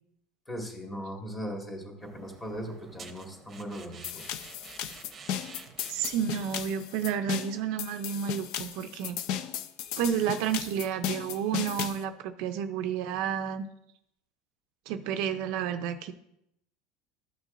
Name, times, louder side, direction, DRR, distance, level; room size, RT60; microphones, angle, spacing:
voice 1, 0.5-4.2, equal, 15° left, -1 dB, 1.9 m, -38 dB
sound 1, 2.0-7.1, right 5 dB, 25° right, 0.9 m, -51 dB
sound 2, 4.0-12.0, left 9 dB, 55° left, 0.6 m, -35 dB
voice 2, 5.9-9.2 10.0-13.7 14.9-16.1, right 8 dB, 60° right, 8 dB, 0.5 m, -31 dB
13.0 x 6.2 x 2.6 m, 0.79 s
supercardioid pair, 140°, 0 cm